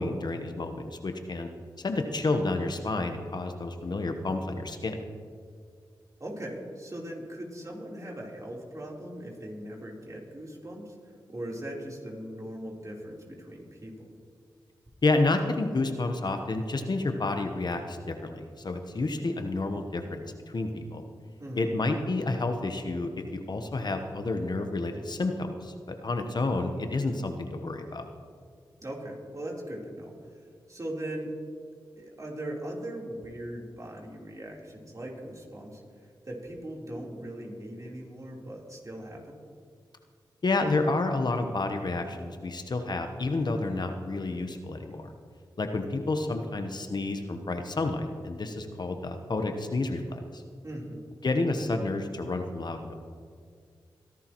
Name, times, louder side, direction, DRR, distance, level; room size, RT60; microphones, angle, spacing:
voice 1, 0.0-1.5 1.8-5.0 15.0-21.0 21.6-25.7 26.0-28.0 40.4-45.1 45.6-50.4 51.2-53.0, left 2 dB, 55° left, 6 dB, 1.1 m, -30 dB
voice 2, 6.2-14.1 21.4-21.7 28.8-30.4 30.7-31.4 32.0-35.8 36.2-39.4 50.6-51.0, right 1 dB, 40° right, -3 dB, 3.7 m, -39 dB
23.0 x 11.0 x 3.1 m, 2.1 s
cardioid pair, 40°, 9 cm